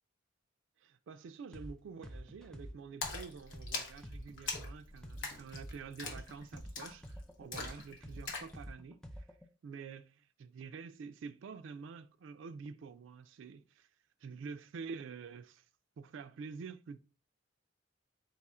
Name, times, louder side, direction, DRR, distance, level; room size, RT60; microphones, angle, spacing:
voice 1, 0.8-9.3 9.6-13.9 14.2-15.6 16.0-17.0, right 5 dB, 80° right, 0.3 m, -48 dB
sound 1, 1.5-1.7 2.0-5.7 6.0-9.5, equal, 5° left, 0.4 m, -47 dB
Splash splatter, 3.0-8.6, left 4 dB, 75° left, 0.9 m, -43 dB
4.1 x 2.4 x 4.2 m
head